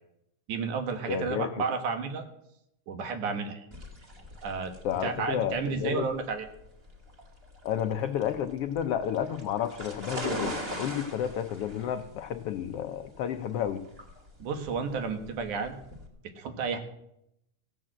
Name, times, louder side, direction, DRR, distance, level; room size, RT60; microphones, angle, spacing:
voice 1, 0.5-2.3 2.9-3.7 4.4-4.7 5.0-6.5 14.4-15.8 16.4-16.8, right 5 dB, 75° right, 7 dB, 2.9 m, -31 dB
voice 2, 1.1-1.6 4.8-6.1 7.6-13.9, left 9 dB, 85° left, 8 dB, 1.3 m, -31 dB
sound 1, 3.7-16.1, equal, 20° right, 1.9 m, -41 dB
16.0 x 8.0 x 7.6 m, 0.78 s
omnidirectional pair, 3.6 m